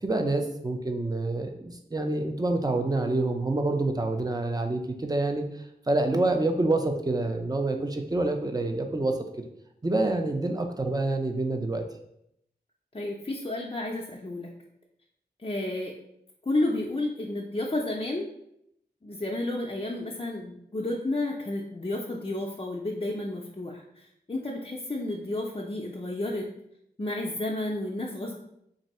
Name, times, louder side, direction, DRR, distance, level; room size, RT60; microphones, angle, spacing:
voice 1, 0.0-5.4 5.9-9.2 9.8-11.8, right 2 dB, 20° right, 4 dB, 0.5 m, -27 dB
voice 2, 12.9-14.5 15.4-15.9 16.5-18.3 19.0-26.5 27.0-28.4, left 2 dB, 30° left, -2 dB, 0.4 m, -31 dB
3.1 x 2.6 x 4.1 m, 0.76 s
wide cardioid pair, 55°, 17 cm